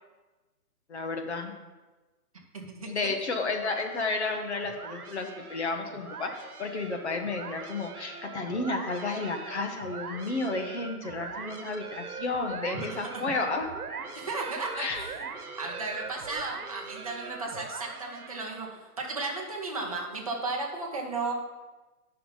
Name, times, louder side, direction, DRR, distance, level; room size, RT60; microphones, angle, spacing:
voice 1, 0.9-1.5 2.8-13.7 14.8-15.1, left 3 dB, 45° left, 4 dB, 1.0 m, -32 dB
voice 2, 2.5-3.1 12.7-12.9 13.1-13.2 14.1-15.2 15.6-21.3, right 3 dB, 25° right, -1 dB, 0.8 m, -35 dB
sound 1, 3.6-18.8, right 5 dB, 70° right, 1.2 m, -42 dB
9.3 x 5.7 x 4.0 m, 1.2 s
hypercardioid pair, 175°, 46 cm